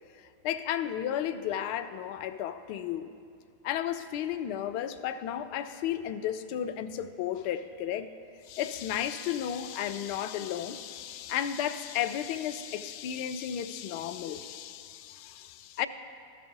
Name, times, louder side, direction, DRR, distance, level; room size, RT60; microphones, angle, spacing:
voice 1, 0.2-3.2 3.6-8.1 8.4-15.9, left 10 dB, 45° left, 10 dB, 0.4 m, -33 dB
13.5 x 4.9 x 3.8 m, 2.4 s
figure-of-eight pair, 90°, 0 cm